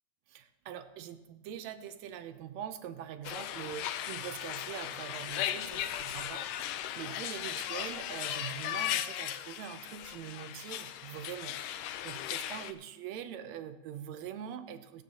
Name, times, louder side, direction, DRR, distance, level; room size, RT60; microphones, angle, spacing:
voice 1, 0.3-15.0, right 9 dB, 80° right, 10 dB, 1.6 m, -43 dB
sound 1, 3.2-12.7, left 11 dB, 80° left, 2.1 m, -37 dB
21.0 x 9.1 x 2.8 m, 1.0 s
omnidirectional pair, 3.7 m